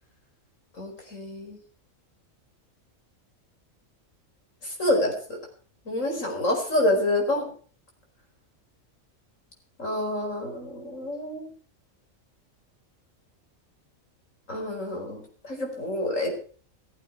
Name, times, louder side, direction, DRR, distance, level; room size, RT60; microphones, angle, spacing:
voice 1, 0.8-1.6 4.6-5.4 5.9-7.4 9.8-11.5 14.5-16.3, left 1 dB, 65° left, 2 dB, 5.2 m, -27 dB
15.0 x 15.0 x 4.7 m, 0.43 s
omnidirectional pair, 1.4 m